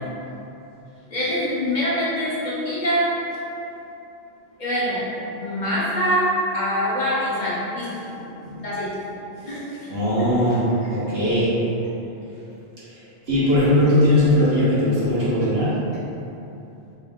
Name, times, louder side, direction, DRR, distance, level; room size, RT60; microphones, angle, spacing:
voice 1, 1.1-3.2 4.6-5.1 5.4-8.0 8.6-9.0 9.4-9.9, equal, 50° left, -9 dB, 0.8 m, -24 dB
voice 2, 8.1-8.7 9.3-9.5 9.9-11.6 12.9-13.0 13.3-15.8, left 1 dB, 65° right, -10 dB, 1.3 m, -20 dB
3.5 x 2.6 x 3.5 m, 2.9 s
omnidirectional pair, 1.1 m